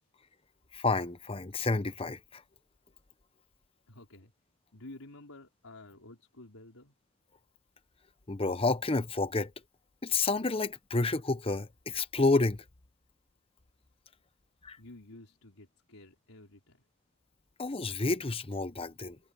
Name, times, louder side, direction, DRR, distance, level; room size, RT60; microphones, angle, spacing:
voice 1, 0.7-2.4 8.3-9.5 10.0-12.6 14.6-14.8 17.6-19.2, left 3 dB, 25° left, 0.8 m, -30 dB
voice 2, 3.9-4.3 4.7-6.9 14.8-16.8, left 2 dB, 85° left, 4.2 m, -51 dB
head